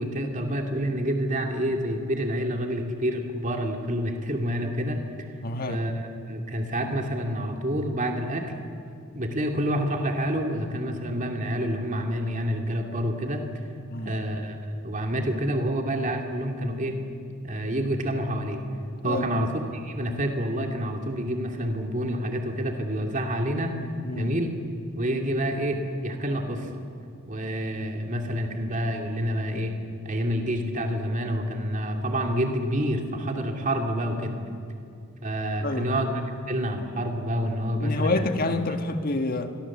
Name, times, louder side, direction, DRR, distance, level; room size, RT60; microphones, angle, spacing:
voice 1, 0.0-5.0 5.7-8.5 9.1-13.4 14.0-14.6 14.8-17.0 17.4-18.6 19.0-23.8 24.1-24.5 25.0-26.7 27.3-29.7 30.0-34.4 35.2-36.2 36.5-38.1, equal, 35° right, 3 dB, 2.7 m, -28 dB
voice 2, 5.4-5.8 13.9-14.2 19.0-19.5 24.0-24.3 35.6-35.9 37.8-39.6, left 2 dB, 45° left, 7 dB, 1.6 m, -28 dB
29.0 x 23.5 x 7.4 m, 2.5 s
head